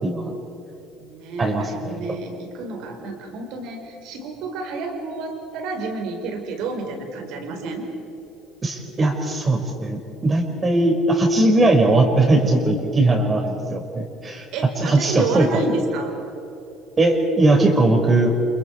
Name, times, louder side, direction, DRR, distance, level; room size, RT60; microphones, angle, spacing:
voice 1, 0.0-0.3 1.4-2.2 8.6-14.5 14.8-15.5 17.0-18.3, right 2 dB, 30° right, 4 dB, 5.5 m, -19 dB
voice 2, 1.0-7.9 11.3-11.5 14.5-16.1, right 3 dB, 60° right, 4 dB, 4.7 m, -30 dB
30.0 x 28.0 x 4.8 m, 2.9 s
hypercardioid pair, 65°, 0 cm